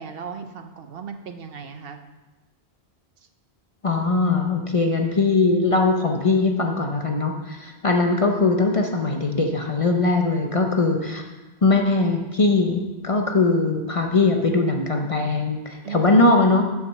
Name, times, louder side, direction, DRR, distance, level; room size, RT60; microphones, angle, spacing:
voice 1, 0.0-2.0 15.8-16.2, right 6 dB, 65° right, 7 dB, 0.8 m, -36 dB
voice 2, 3.8-11.2 11.6-16.6, left 3 dB, 35° left, 3 dB, 0.7 m, -20 dB
7.7 x 5.8 x 6.3 m, 1.2 s
omnidirectional pair, 1.1 m